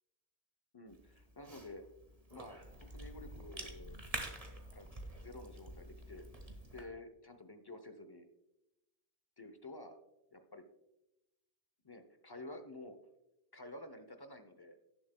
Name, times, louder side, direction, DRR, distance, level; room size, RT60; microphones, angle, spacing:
voice 1, 0.7-1.8 2.3-4.0 4.7-4.9 5.2-6.3 6.7-8.3 9.4-10.0 10.3-10.6 11.8-13.0 13.5-14.8, left 2 dB, 25° left, 8 dB, 0.6 m, -51 dB
Cough / Chewing mastication, 0.9-6.8, right 1 dB, 35° right, 1.4 m, -47 dB
17.5 x 7.2 x 2.2 m, 0.94 s
omnidirectional pair, 1.1 m